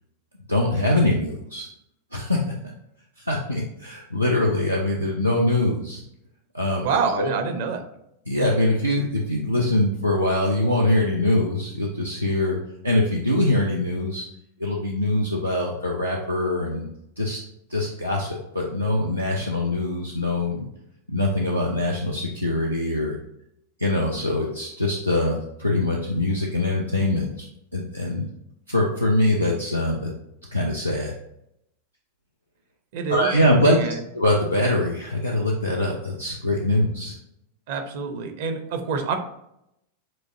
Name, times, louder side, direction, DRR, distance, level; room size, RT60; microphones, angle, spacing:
voice 1, 0.5-1.7 2.1-2.4 3.2-6.0 6.5-6.9 7.2-7.3 8.3-12.6 12.8-14.2 14.6-16.9 17.2-17.4 17.7-20.7 21.1-23.2 23.8-27.5 27.7-28.2 28.7-30.1 30.5-31.1 33.1-33.8 34.1-37.2, left 1 dB, 90° right, -2 dB, 0.5 m, -23 dB
voice 2, 6.8-7.8 32.9-33.3 33.6-34.0 37.7-39.2, right 5 dB, 50° right, 6 dB, 0.7 m, -26 dB
7.4 x 2.6 x 2.6 m, 0.80 s
figure-of-eight pair, 90°, 0 cm